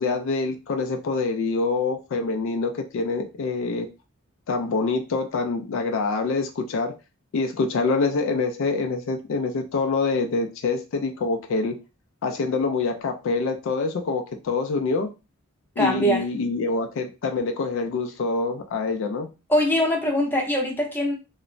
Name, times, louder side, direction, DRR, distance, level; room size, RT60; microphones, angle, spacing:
voice 1, 0.0-3.9 4.5-6.9 7.3-11.8 12.2-15.1 15.8-19.3, left 3 dB, 65° left, 0.3 m, -25 dB
voice 2, 15.8-16.3 19.5-21.1, equal, 10° left, 0.6 m, -22 dB
2.9 x 2.0 x 2.5 m
head